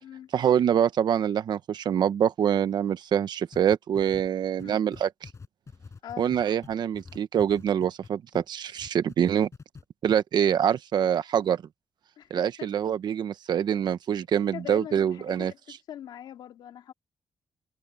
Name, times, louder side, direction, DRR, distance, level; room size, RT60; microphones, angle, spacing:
voice 1, 0.3-5.3 6.2-9.5 10.0-11.6 12.3-15.5, right 9 dB, 75° right, 1.2 m, -25 dB
sound 1, 3.5-8.5 8.8-9.8 10.1-10.2, left 4 dB, 40° left, 7.8 m, -45 dB
voice 2, 12.2-12.7 14.5-16.9, left 10 dB, 90° left, 2.7 m, -42 dB
cardioid pair, 80°, 7 cm